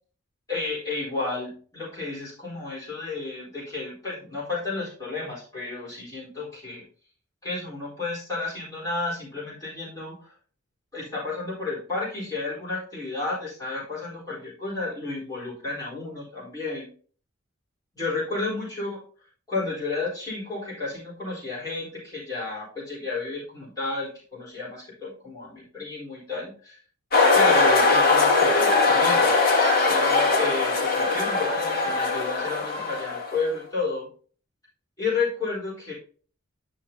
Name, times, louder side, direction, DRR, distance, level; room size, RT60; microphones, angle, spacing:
voice 1, 0.5-6.8 7.4-10.3 10.9-16.9 17.9-19.0 19.5-26.8 27.3-29.5 29.9-34.1 35.0-35.9, left 3 dB, 15° left, -8 dB, 4.0 m, -32 dB
sound 1, 27.1-33.4, left 3 dB, 45° left, 1.5 m, -21 dB
10.5 x 5.7 x 2.8 m, 0.42 s
head